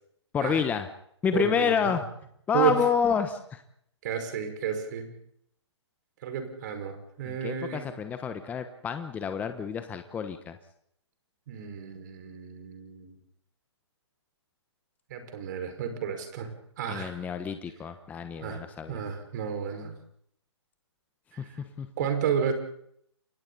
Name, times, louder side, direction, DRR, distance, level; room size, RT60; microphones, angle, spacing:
voice 1, 0.3-0.9 1.2-2.0 2.5-3.6 7.2-10.6 16.9-19.0 21.4-21.5 21.8-21.9, left 7 dB, 10° left, 8 dB, 1.1 m, -29 dB
voice 2, 1.3-2.0 2.5-2.8 4.0-5.1 6.2-7.8 11.5-13.1 15.1-16.5 16.8-17.2 18.4-19.9 21.3-21.6 22.0-22.5, right 8 dB, 40° right, 6 dB, 5.4 m, -31 dB
30.0 x 24.0 x 4.1 m, 0.69 s
figure-of-eight pair, 140°, 15 cm